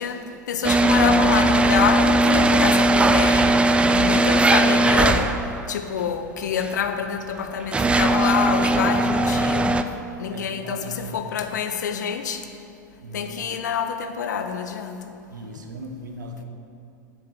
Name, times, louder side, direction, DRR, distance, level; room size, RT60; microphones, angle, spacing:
voice 1, 0.0-3.6 3.9-5.4 5.7-9.8 10.2-12.5 13.1-15.2, left 7 dB, 70° left, 7 dB, 0.9 m, -26 dB
sound 1, 0.6-5.7 6.6-6.7 7.4-9.8, right 2 dB, 10° right, 0.5 m, -19 dB
voice 2, 10.3-11.5 13.0-13.3 15.3-16.4, right 1 dB, 75° right, 3 dB, 1.3 m, -38 dB
7.9 x 7.1 x 7.7 m, 2.6 s
figure-of-eight pair, 90°, 10 cm